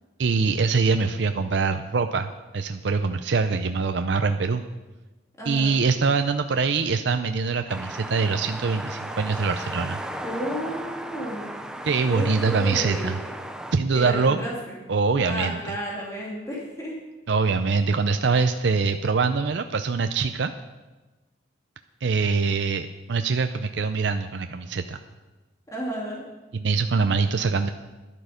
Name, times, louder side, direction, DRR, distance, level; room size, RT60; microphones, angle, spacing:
voice 1, 0.2-4.6 5.5-10.0 11.8-13.2 13.7-14.4 14.9-15.6 17.3-20.5 22.0-25.0 26.5-27.7, right 4 dB, 70° right, 7 dB, 0.5 m, -24 dB
voice 2, 5.4-5.8 10.2-11.5 12.0-13.2 13.9-14.8 15.2-17.0 25.7-26.2, equal, 15° left, -4 dB, 2.6 m, -32 dB
sound 1, 7.7-13.8, right 1 dB, 5° right, 0.6 m, -35 dB
12.5 x 11.0 x 5.1 m, 1.2 s
head